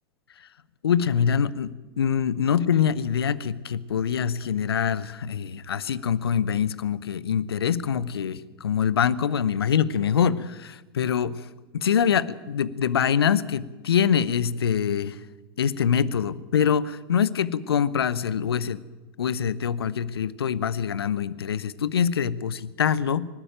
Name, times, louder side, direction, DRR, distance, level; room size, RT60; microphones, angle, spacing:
voice 1, 0.8-11.5 11.7-15.2 15.6-18.8 19.2-23.3, left 8 dB, 75° left, 18 dB, 0.9 m, -24 dB
25.0 x 12.0 x 9.2 m, 1.2 s
figure-of-eight pair, 90°, 13 cm